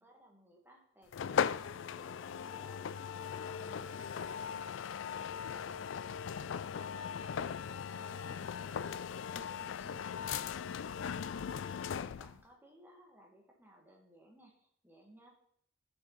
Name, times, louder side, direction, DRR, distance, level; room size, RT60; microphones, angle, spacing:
voice 1, 0.0-15.3, right 1 dB, 10° right, -1 dB, 1.9 m, -61 dB
sound 1, 1.1-12.4, left 7 dB, 70° left, 0.3 m, -38 dB
14.0 x 6.3 x 4.0 m, 0.69 s
head